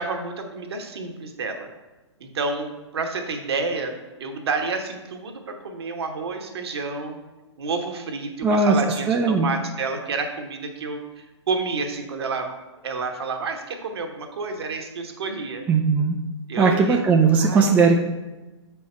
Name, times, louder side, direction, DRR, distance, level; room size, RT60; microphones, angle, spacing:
voice 1, 0.0-1.7 2.2-7.2 7.6-11.0 11.5-12.5 12.8-15.6 16.5-17.0 17.4-17.7, right 4 dB, 60° right, 4 dB, 1.1 m, -29 dB
voice 2, 8.4-8.7 9.1-9.5 15.7-16.2 16.6-18.0, right 4 dB, 10° right, 1 dB, 0.4 m, -18 dB
7.1 x 4.7 x 4.4 m, 1.1 s
figure-of-eight pair, 115°, 15 cm